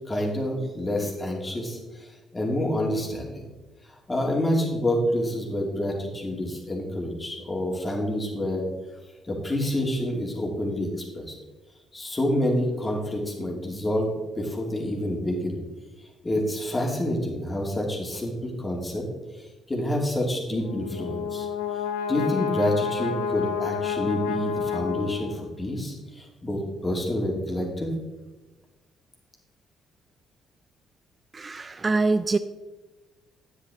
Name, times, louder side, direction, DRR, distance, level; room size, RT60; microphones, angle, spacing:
voice 1, 0.1-1.8 2.3-3.4 4.1-8.6 9.3-10.9 11.1-11.3 11.9-14.1 14.3-15.5 16.2-19.0 19.7-21.5 22.1-27.9, left 1 dB, 25° left, 0 dB, 2.8 m, -28 dB
Brass instrument, 20.6-25.6, left 7 dB, 85° left, 0.6 m, -29 dB
voice 2, 31.3-32.4, right 3 dB, 35° right, 11 dB, 0.4 m, -24 dB
9.3 x 8.3 x 3.8 m, 1.2 s
hypercardioid pair, 50°, 0 cm